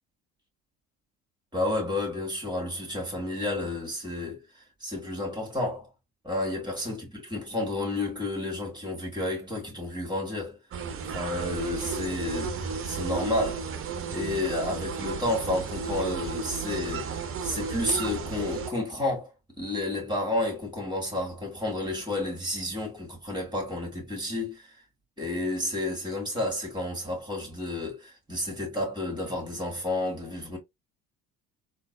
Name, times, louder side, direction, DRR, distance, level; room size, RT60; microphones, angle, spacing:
voice 1, 1.5-5.9 6.2-10.6 11.1-13.6 14.1-19.3 19.6-24.8 25.2-30.6, left 2 dB, 10° right, 2.2 m, -31 dB
sound 1, 10.7-18.7, right 5 dB, 30° right, 0.7 m, -33 dB
3.8 x 2.4 x 2.8 m
figure-of-eight pair, 60°, 42 cm